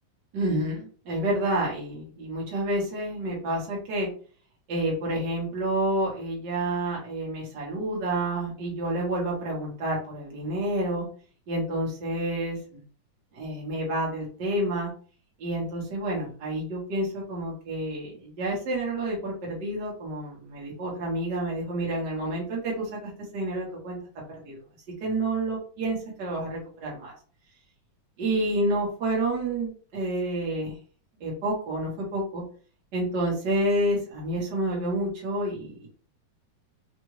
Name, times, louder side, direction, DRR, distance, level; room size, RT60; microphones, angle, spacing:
voice 1, 0.3-4.1 4.7-11.1 11.5-12.8 13.3-14.9 15.4-24.0 24.4-24.6 25.0-27.1 28.2-30.7 31.2-32.4 32.9-35.9, right 1 dB, 55° right, -4 dB, 1.2 m, -29 dB
5.2 x 2.5 x 3.2 m, 0.40 s
omnidirectional pair, 4.0 m